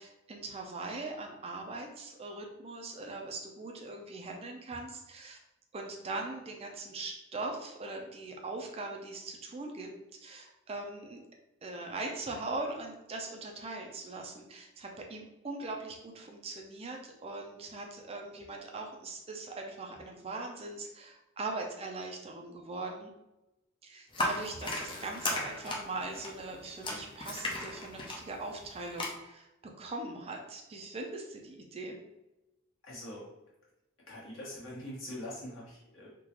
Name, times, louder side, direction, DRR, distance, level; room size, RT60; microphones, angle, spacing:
voice 1, 0.0-5.4 5.7-9.9 10.2-11.2 11.6-23.1 23.8-32.0, right 2 dB, 30° right, 2 dB, 0.4 m, -41 dB
sound 1, 24.1-29.1, left 2 dB, 25° left, 0.5 m, -36 dB
voice 2, 32.8-33.3 34.1-36.1, left 1 dB, 75° left, -6 dB, 1.4 m, -43 dB
3.6 x 2.3 x 2.9 m, 0.95 s
head